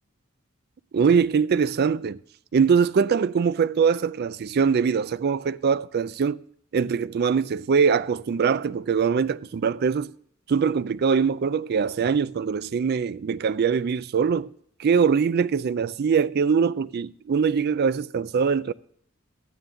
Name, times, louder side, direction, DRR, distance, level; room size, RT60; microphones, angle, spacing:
voice 1, 0.9-2.2 2.5-6.4 6.7-10.1 10.5-14.5 14.8-18.7, right 6 dB, 50° right, 0.4 m, -22 dB
13.0 x 9.2 x 3.7 m
head